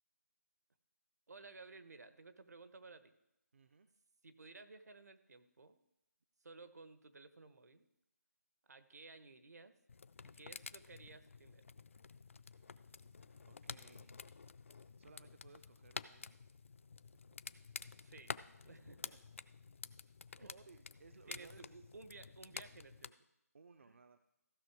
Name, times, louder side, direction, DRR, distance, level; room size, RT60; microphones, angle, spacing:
voice 1, 1.3-3.1 4.2-5.8 6.4-7.9 8.7-9.7 10.2-11.6 18.0-18.3 18.6-19.1 20.4-20.5 21.3-23.1 23.8-23.9, right 3 dB, 75° right, 11 dB, 1.0 m, -56 dB
voice 2, 3.5-3.9 12.4-14.2 14.7-16.4 19.1-19.2 20.4-21.8 23.5-24.2, right 4 dB, 50° right, 9 dB, 0.5 m, -63 dB
sound 1, 9.9-23.1, left 5 dB, 50° left, 0.4 m, -51 dB
15.0 x 5.7 x 4.7 m, 0.86 s
figure-of-eight pair, 170°, 9 cm